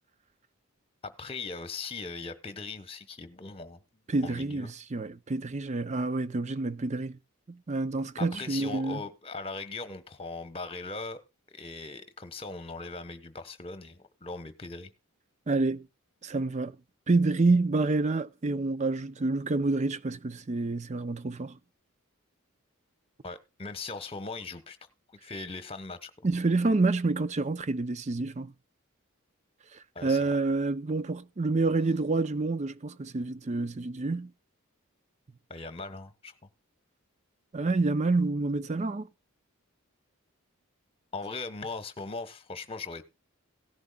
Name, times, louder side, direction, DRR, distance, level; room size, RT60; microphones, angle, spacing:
voice 1, 1.0-3.8 4.2-4.7 8.2-11.2 11.5-14.9 23.2-24.8 25.1-26.1 29.9-30.3 35.5-36.5 41.1-43.0, left 3 dB, 25° left, 1.2 m, -39 dB
voice 2, 4.1-7.2 7.5-9.0 15.5-15.8 16.2-16.7 17.1-21.6 26.2-28.5 30.0-34.3 37.5-39.1, right 3 dB, 35° right, 0.5 m, -28 dB
17.0 x 11.0 x 2.4 m
head